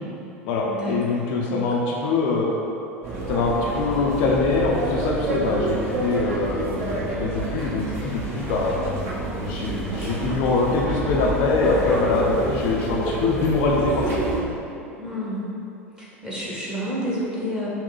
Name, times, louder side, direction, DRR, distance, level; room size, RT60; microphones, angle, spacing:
voice 1, 0.4-2.5 3.3-8.8 9.4-14.1, left 3 dB, 50° left, -2 dB, 0.6 m, -23 dB
sound 1, 3.0-14.4, right 2 dB, 35° right, 1.4 m, -28 dB
voice 2, 15.0-15.5 16.0-17.7, equal, 10° right, -7 dB, 1.3 m, -29 dB
5.9 x 2.2 x 3.8 m, 2.8 s
figure-of-eight pair, 80°, 7 cm